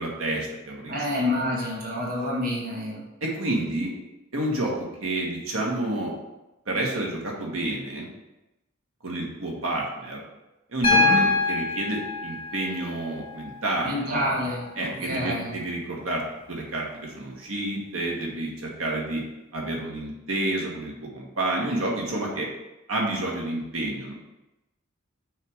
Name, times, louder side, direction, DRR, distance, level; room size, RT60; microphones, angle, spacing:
voice 1, 0.0-1.3 3.2-3.9 4.3-6.1 6.7-8.1 9.0-10.2 10.7-14.2 14.8-16.2 16.5-19.2 19.5-22.5 22.9-24.1, right 1 dB, 75° right, -1 dB, 1.4 m, -29 dB
voice 2, 0.9-3.0 10.9-11.3 13.8-15.5, left 1 dB, 45° right, -4 dB, 1.5 m, -28 dB
Piano, 10.8-14.8 16.4-16.5, left 3 dB, 25° left, 1.2 m, -26 dB
6.4 x 3.4 x 4.9 m, 0.99 s
head